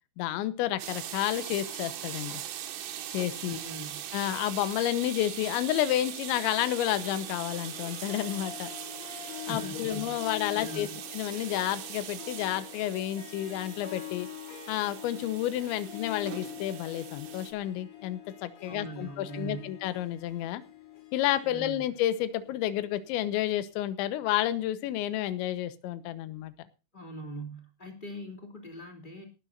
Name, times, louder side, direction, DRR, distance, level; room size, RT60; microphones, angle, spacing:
voice 1, 0.2-2.4 3.1-3.6 4.1-8.7 9.5-10.9 11.1-14.3 14.7-20.6 21.1-26.5, left 13 dB, 75° left, 12 dB, 3.2 m, -30 dB
sound 1, 0.8-17.5, right 11 dB, 80° right, 4.2 m, -41 dB
voice 2, 3.4-4.0 9.4-10.2 10.5-11.0 18.6-19.7 21.4-21.8 26.9-29.2, right 2 dB, 15° left, 3 dB, 1.8 m, -41 dB
Harp, 6.3-23.1, left 11 dB, 50° left, 2.3 m, -45 dB
18.5 x 13.5 x 2.6 m, 0.32 s
omnidirectional pair, 5.6 m